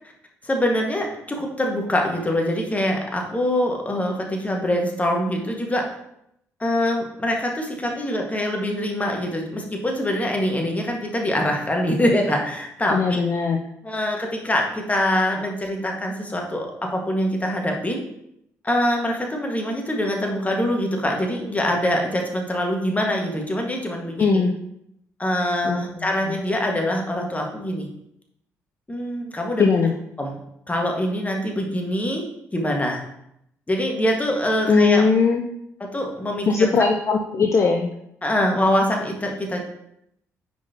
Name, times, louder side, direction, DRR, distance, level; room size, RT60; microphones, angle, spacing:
voice 1, 0.4-5.8 6.6-13.2 13.8-18.0 18.6-24.4 25.2-27.9 28.9-29.7 30.2-30.4 30.7-32.2 32.5-33.0 33.7-35.0 35.9-36.7 38.2-39.6, left 1 dB, 20° left, 1 dB, 1.7 m, -24 dB
voice 2, 12.9-13.6 24.2-24.6 25.6-26.3 29.6-29.9 34.7-35.5 36.5-37.9, left 4 dB, 40° left, 3 dB, 0.6 m, -20 dB
9.4 x 4.6 x 2.9 m, 0.78 s
figure-of-eight pair, 40°, 8 cm